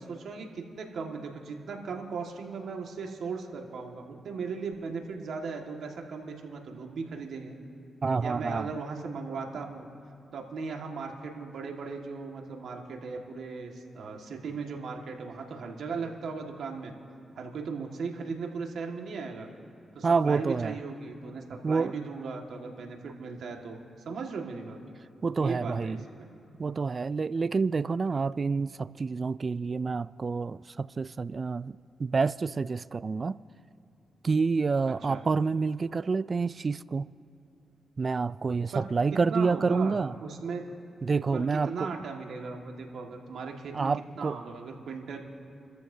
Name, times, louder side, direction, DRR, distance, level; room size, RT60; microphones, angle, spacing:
voice 1, 0.0-7.6 8.2-9.9 10.3-16.9 17.4-19.5 19.9-23.8 24.1-24.8 25.4-26.3 34.9-35.2 38.7-38.9 39.3-40.6 41.3-43.9 44.2-45.2, right 4 dB, 75° right, 1.8 m, -37 dB
voice 2, 8.0-8.7 20.0-20.8 21.6-21.9 25.2-26.0 26.6-33.4 34.2-37.1 38.0-40.1 41.0-41.9 43.7-44.4, right 4 dB, 45° right, 0.3 m, -28 dB
29.5 x 13.5 x 2.8 m
cardioid pair, 60°, 0 cm